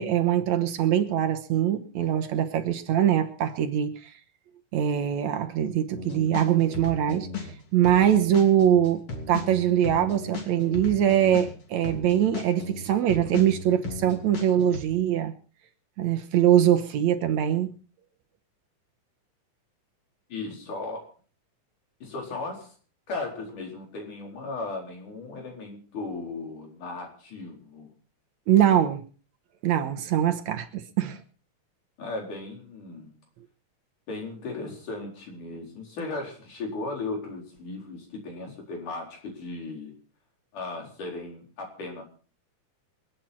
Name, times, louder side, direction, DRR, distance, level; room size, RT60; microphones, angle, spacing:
voice 1, 0.0-4.1 4.7-9.0 9.3-15.3 16.0-17.7 28.5-29.0 29.6-31.2, right 10 dB, 70° right, 2.2 m, -23 dB
sound 1, 5.9-7.5 7.8-14.8, left 4 dB, 45° left, 3.9 m, -36 dB
voice 2, 20.3-21.1 22.0-22.7 23.1-27.9 32.0-33.1 34.1-39.9 40.5-42.0, left 3 dB, 75° left, 5.8 m, -36 dB
27.0 x 9.2 x 4.4 m
omnidirectional pair, 3.6 m